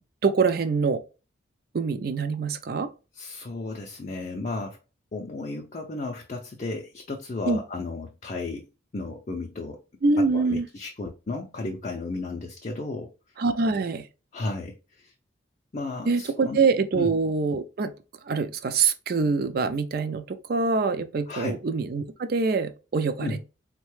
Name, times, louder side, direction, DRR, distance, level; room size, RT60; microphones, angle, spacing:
voice 1, 0.2-1.0 1.7-2.9 7.4-7.6 10.0-10.7 13.4-14.1 16.1-17.9 18.3-20.2 20.5-23.4, right 4 dB, 50° right, 0.4 m, -24 dB
voice 2, 3.1-4.8 5.1-8.7 8.9-9.8 10.3-13.1 14.3-15.1 15.7-16.6 17.0-17.1 21.3-21.5 23.2-23.4, left 3 dB, 35° left, 0.4 m, -34 dB
3.8 x 2.2 x 3.0 m
head